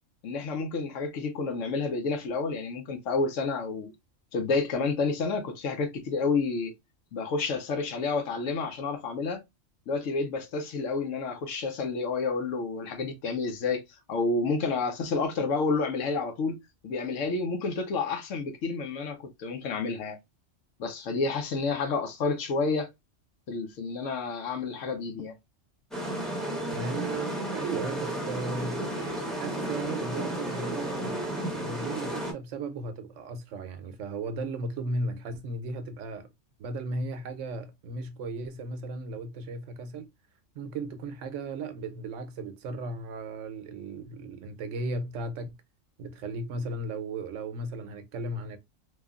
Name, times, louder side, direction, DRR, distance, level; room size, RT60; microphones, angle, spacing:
voice 1, 0.2-3.9 4.3-6.7 7.1-9.4 9.9-13.8 14.1-20.2 20.8-22.9 23.5-25.4, left 4 dB, 80° left, 1.1 m, -30 dB
sound 1, 25.9-32.3, right 1 dB, ahead, 0.6 m, -33 dB
voice 2, 26.7-28.9 29.4-36.3 36.6-40.1 40.5-45.6 46.0-48.6, right 2 dB, 80° right, 0.9 m, -36 dB
3.1 x 2.3 x 2.3 m
omnidirectional pair, 1.3 m